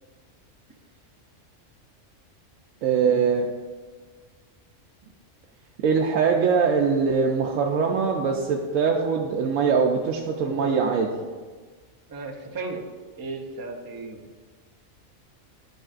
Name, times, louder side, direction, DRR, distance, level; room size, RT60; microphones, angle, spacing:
voice 1, 2.8-3.5 5.8-11.1, right 5 dB, 80° right, 0 dB, 1.0 m, -22 dB
voice 2, 12.1-12.8 13.2-14.3, right 3 dB, 30° right, 3 dB, 0.4 m, -35 dB
9.7 x 5.3 x 2.5 m, 1.4 s
omnidirectional pair, 1.4 m